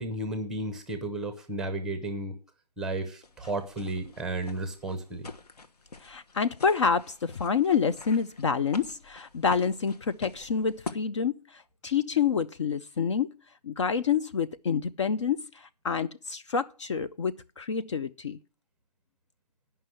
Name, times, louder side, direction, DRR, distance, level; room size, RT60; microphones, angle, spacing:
voice 1, 0.0-2.4 2.8-5.3, right 2 dB, ahead, 0.7 m, -33 dB
sound 1, 3.2-10.9, left 3 dB, 70° left, 1.2 m, -46 dB
voice 2, 6.0-13.4 13.6-18.4, left 6 dB, 45° left, 0.5 m, -28 dB
9.4 x 5.6 x 7.5 m
hypercardioid pair, 155°, 21 cm